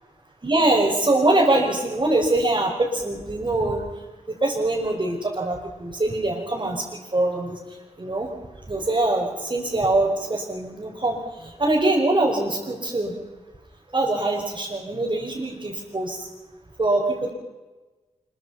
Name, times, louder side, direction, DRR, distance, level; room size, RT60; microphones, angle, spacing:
voice 1, 0.4-3.9 4.3-7.6 8.0-8.3 8.7-13.2 13.9-16.3 16.8-17.3, right 2 dB, 40° right, -4 dB, 5.5 m, -23 dB
25.5 x 24.0 x 5.8 m, 1.2 s
wide cardioid pair, 70°, 12 cm